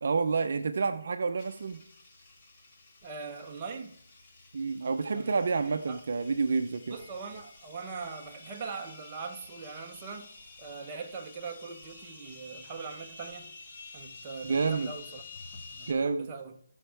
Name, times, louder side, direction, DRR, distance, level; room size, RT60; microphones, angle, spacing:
voice 1, 0.0-1.8 4.5-6.9 14.4-14.9 15.9-16.3, right 4 dB, 50° right, 0.6 m, -29 dB
sound 1, 1.4-15.9, left 3 dB, 25° left, 1.5 m, -50 dB
voice 2, 3.0-4.0 5.1-6.0 6.9-10.3 10.6-13.5 13.9-15.2 15.7-16.6, right 5 dB, 20° right, 0.9 m, -41 dB
18.5 x 6.3 x 3.4 m
hypercardioid pair, 170°, 0 cm